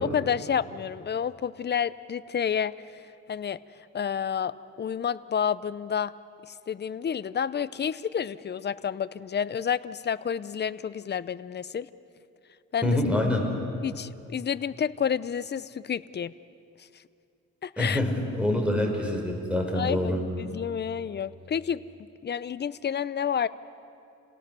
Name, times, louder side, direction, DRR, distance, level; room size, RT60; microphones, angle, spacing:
voice 1, 0.0-3.0 3.3-3.6 3.9-6.1 6.4-11.9 12.7-13.0 13.8-16.3 17.6-18.0 19.7-21.8 22.2-23.5, left 8 dB, 35° left, 16 dB, 0.7 m, -30 dB
voice 2, 12.8-13.4 17.8-20.2, left 1 dB, 5° right, 2 dB, 4.7 m, -26 dB
29.5 x 18.0 x 6.8 m, 2.6 s
cardioid pair, 90°, 30 cm